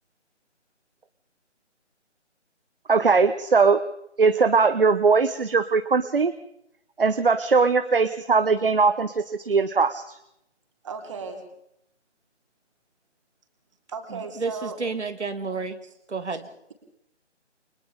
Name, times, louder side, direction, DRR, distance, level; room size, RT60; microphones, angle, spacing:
voice 1, 2.9-3.8 4.2-6.3 7.0-10.2, right 4 dB, 50° right, 10 dB, 1.2 m, -20 dB
voice 2, 10.8-11.4 13.9-14.8 16.3-16.4, right 4 dB, 25° right, 3 dB, 3.6 m, -35 dB
voice 3, 14.1-15.8 16.1-16.5, right 4 dB, 70° right, 7 dB, 2.2 m, -31 dB
30.0 x 24.0 x 3.7 m, 0.77 s
figure-of-eight pair, 165°, 36 cm